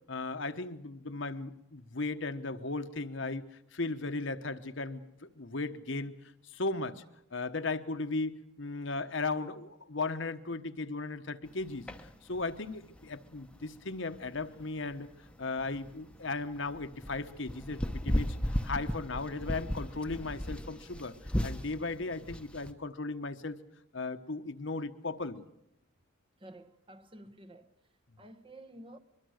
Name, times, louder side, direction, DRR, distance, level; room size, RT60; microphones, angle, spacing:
voice 1, 0.1-3.4 3.7-6.1 6.5-7.0 7.3-11.9 12.3-15.1 15.4-17.8 18.0-18.4 18.6-21.1 21.4-23.6 23.9-25.4, left 3 dB, 60° left, 1.1 m, -36 dB
sound 1, 11.5-22.7, equal, 5° left, 1.0 m, -37 dB
voice 2, 26.4-27.7 28.2-29.0, right 1 dB, 25° right, 1.0 m, -51 dB
23.5 x 23.0 x 6.5 m
head